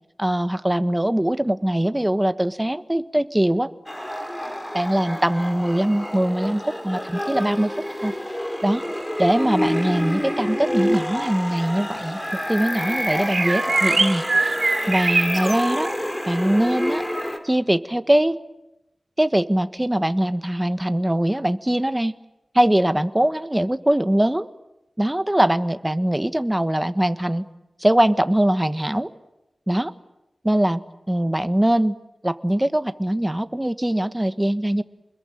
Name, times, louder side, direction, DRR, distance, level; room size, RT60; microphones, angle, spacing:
voice 1, 0.2-3.7 4.7-7.7 8.0-8.1 8.6-8.8 9.2-15.9 16.2-17.0 17.4-18.4 19.2-22.1 22.5-24.5 25.0-27.5 27.8-29.1 29.7-29.9 30.4-30.8 31.1-31.9 32.2-34.8, right 1 dB, 10° right, 11 dB, 1.4 m, -22 dB
sound 1, 3.9-17.4, equal, 10° left, 3.3 m, -28 dB
sound 2, 13.0-15.6, right 3 dB, 55° right, 4.8 m, -22 dB
29.0 x 21.5 x 9.2 m, 0.92 s
wide cardioid pair, 80°, 0 cm